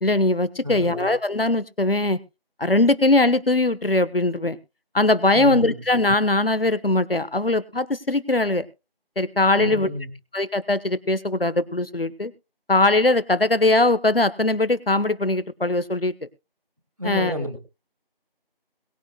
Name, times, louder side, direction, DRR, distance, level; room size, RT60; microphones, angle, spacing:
voice 1, 0.0-2.2 2.6-4.6 4.9-8.7 9.2-9.9 10.3-12.3 12.7-16.1 17.0-17.3, left 2 dB, 70° left, 16 dB, 1.2 m, -21 dB
voice 2, 0.6-1.1 5.3-5.8 9.6-10.1 17.0-17.6, left 1 dB, 35° right, 5 dB, 1.9 m, -30 dB
22.0 x 9.1 x 2.3 m, 0.27 s
figure-of-eight pair, 180°, 30 cm